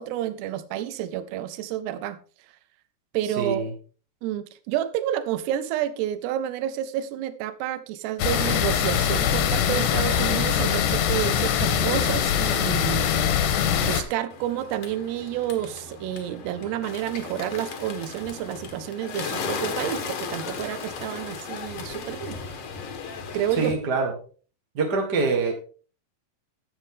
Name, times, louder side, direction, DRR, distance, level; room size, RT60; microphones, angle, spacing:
voice 1, 0.0-2.2 3.1-3.7 4.2-13.2 13.8-22.4 23.3-23.7, right 11 dB, 85° right, 12 dB, 2.8 m, -30 dB
voice 2, 3.4-3.7 23.6-24.1 24.7-25.5, right 4 dB, 55° right, 1 dB, 1.1 m, -24 dB
sound 1, 8.2-14.0, left 8 dB, 80° left, 3.2 m, -23 dB
Bird, 14.3-23.7, left 5 dB, 60° left, 1.7 m, -36 dB
11.5 x 8.2 x 3.7 m, 0.39 s
omnidirectional pair, 4.7 m